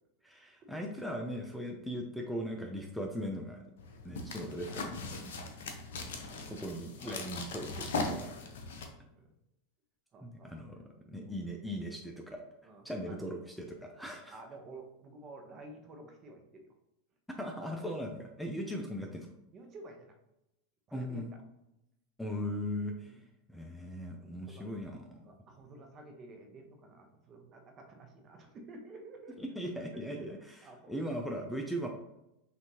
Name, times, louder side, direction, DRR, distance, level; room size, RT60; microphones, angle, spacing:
voice 1, 0.2-3.7 4.0-5.1 5.4-5.6 6.5-8.3 10.2-12.4 12.8-14.4 17.4-19.3 20.9-21.3 22.2-23.2 23.5-25.2 29.4-30.4 30.9-31.9, equal, ahead, 2 dB, 0.5 m, -39 dB
sound 1, 3.8-8.9, left 3 dB, 75° left, 0.7 m, -39 dB
voice 2, 8.9-9.2 10.1-10.5 11.1-11.3 12.6-13.2 14.0-16.7 18.5-18.7 19.5-20.1 20.9-21.2 23.1-23.3 24.2-24.7 25.3-29.4 30.2-30.3 30.6-31.0, right 2 dB, 35° right, 4 dB, 1.0 m, -52 dB
5.9 x 2.8 x 2.9 m, 0.87 s
hypercardioid pair, 95°, 0 cm